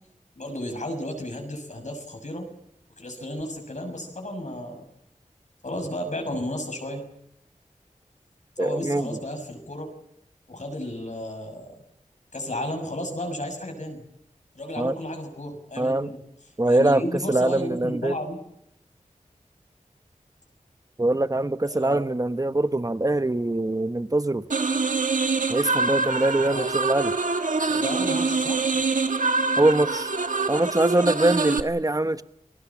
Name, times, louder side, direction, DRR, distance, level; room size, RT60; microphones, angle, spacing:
voice 1, 0.4-2.4 3.0-4.8 5.6-7.0 8.6-9.9 10.5-11.7 12.3-14.0 14.5-16.2 16.7-18.4 21.7-22.0 26.5-26.7 27.7-28.8, left 1 dB, 65° left, 6.7 m, -33 dB
voice 2, 8.6-9.2 14.8-14.9 15.8-16.1 16.6-17.0 17.3-18.2 21.0-24.5 25.5-27.1 29.6-30.1 30.5-32.2, right 2 dB, 25° right, 1.1 m, -23 dB
sound 1, 24.5-31.6, right 3 dB, 75° right, 1.4 m, -25 dB
29.0 x 19.5 x 7.3 m
wide cardioid pair, 45°, 14 cm